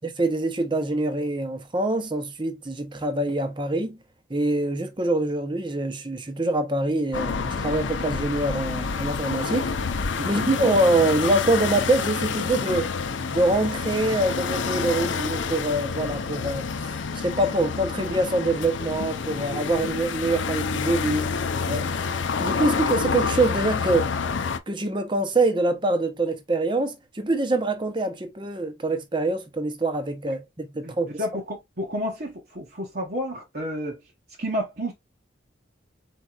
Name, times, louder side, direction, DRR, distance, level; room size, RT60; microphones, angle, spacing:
voice 1, 0.0-4.0 4.3-9.7 10.2-12.9 13.3-16.9 17.1-21.3 21.7-21.9 22.4-24.1 24.7-31.1, right 2 dB, 25° right, 0.7 m, -25 dB
sound 1, 7.1-24.6, left 5 dB, 70° left, 0.6 m, -28 dB
voice 2, 30.8-34.0 34.4-34.9, equal, 50° right, 0.9 m, -31 dB
4.5 x 4.2 x 2.4 m
head